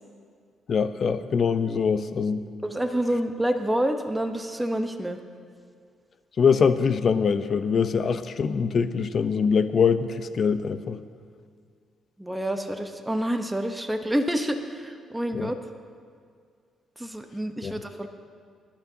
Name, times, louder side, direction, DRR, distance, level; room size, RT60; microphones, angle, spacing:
voice 1, 0.7-2.5 6.4-11.0 15.3-15.5 17.6-17.8, left 6 dB, 50° left, 11 dB, 0.7 m, -23 dB
voice 2, 2.6-5.2 12.2-15.6 17.0-18.1, right 1 dB, 10° right, 5 dB, 0.9 m, -28 dB
22.5 x 11.5 x 2.8 m, 2.1 s
cardioid pair, 90°, 0 cm